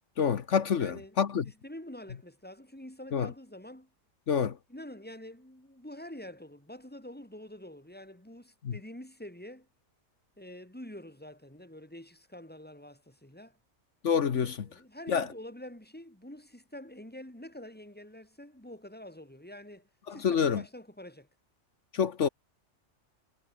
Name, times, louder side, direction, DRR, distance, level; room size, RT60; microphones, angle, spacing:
voice 1, 0.2-1.4 3.1-3.3 4.3-4.5 8.6-8.7 14.0-14.6 15.1-15.3 20.1-20.6 21.9-22.3, left 7 dB, 75° left, 1.5 m, -27 dB
voice 2, 0.8-1.2 1.5-3.9 4.7-9.7 10.4-13.6 14.3-21.3, left 1 dB, 10° left, 4.4 m, -46 dB
omnidirectional pair, 1.2 m